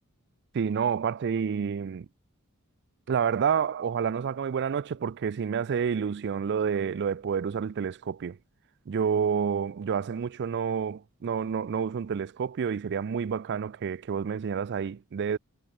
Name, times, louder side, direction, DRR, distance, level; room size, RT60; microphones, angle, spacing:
voice 1, 0.5-2.1 3.1-8.4 8.9-15.4, right 7 dB, 55° right, 0.4 m, -29 dB
head